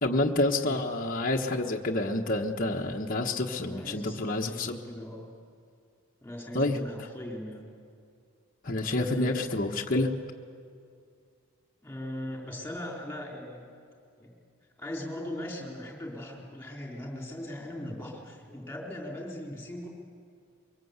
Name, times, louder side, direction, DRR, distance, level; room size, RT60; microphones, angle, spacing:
voice 1, 0.0-4.8 6.5-6.8 8.6-10.1, left 2 dB, 40° left, 1 dB, 1.3 m, -28 dB
voice 2, 3.6-5.3 6.2-7.7 9.0-9.4 11.8-13.6 14.2-14.3 14.8-19.9, left 1 dB, 10° left, -1 dB, 4.2 m, -39 dB
23.5 x 23.0 x 8.2 m, 2.3 s
head